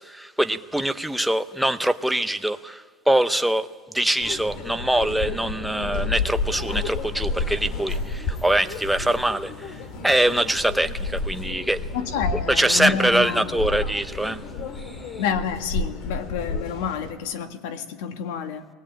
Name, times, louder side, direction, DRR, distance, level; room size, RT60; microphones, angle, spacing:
voice 1, 0.0-3.7 3.9-9.7 10.0-11.8 12.5-14.4, right 1 dB, ahead, 0.6 m, -23 dB
sound 1, 4.2-17.1, left 3 dB, 45° left, 2.2 m, -31 dB
voice 2, 11.9-13.5 15.2-18.7, left 7 dB, 80° left, 1.7 m, -29 dB
21.5 x 19.5 x 8.9 m
cardioid pair, 165°, 0 cm